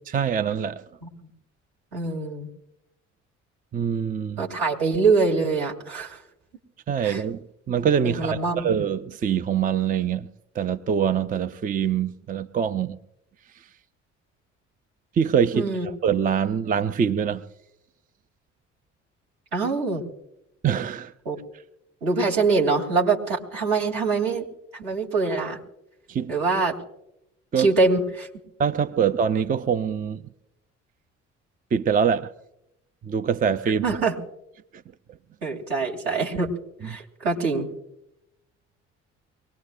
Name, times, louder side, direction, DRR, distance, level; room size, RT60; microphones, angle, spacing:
voice 1, 0.1-0.8 3.7-4.4 6.9-10.3 10.6-13.0 15.1-17.4 20.6-21.1 26.1-26.3 27.5-27.7 28.6-30.2 31.7-32.3 33.0-33.8 36.8-37.0, right 7 dB, 25° right, 0.5 m, -24 dB
voice 2, 1.9-2.5 4.4-6.2 7.0-7.2 8.0-8.7 15.5-15.9 19.5-20.0 21.2-21.4 22.0-24.4 24.7-25.6 26.3-26.7 27.6-28.3 33.8-34.1 35.4-36.5 36.8-37.7, right 4 dB, 60° right, 3.1 m, -24 dB
24.0 x 19.0 x 2.5 m
figure-of-eight pair, 50°, 37 cm